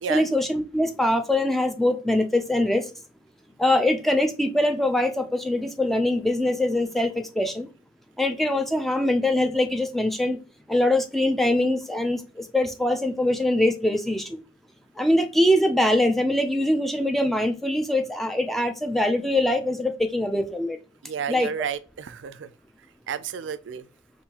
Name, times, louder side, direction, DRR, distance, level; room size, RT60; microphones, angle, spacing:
voice 1, 0.1-2.9 3.6-7.7 8.2-10.4 10.7-14.4 15.0-20.8 21.3-21.5, left 1 dB, ahead, 0.4 m, -23 dB
voice 2, 21.0-22.5 23.1-23.9, right 7 dB, 70° right, 0.4 m, -31 dB
5.3 x 2.6 x 2.9 m
head